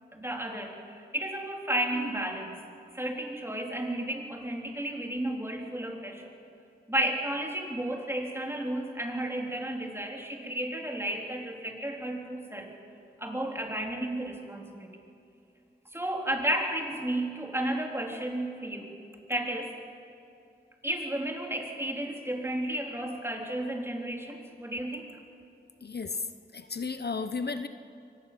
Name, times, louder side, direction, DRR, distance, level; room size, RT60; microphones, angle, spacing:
voice 1, 0.1-2.6 2.9-6.2 6.9-12.7 13.2-14.9 15.9-18.9 19.3-19.7 20.8-25.1, right 1 dB, 15° right, 1 dB, 4.0 m, -33 dB
voice 2, 25.8-26.3 26.5-27.7, left 4 dB, 60° left, 9 dB, 0.9 m, -33 dB
24.0 x 19.0 x 7.5 m, 2.5 s
cardioid pair, 45°, 19 cm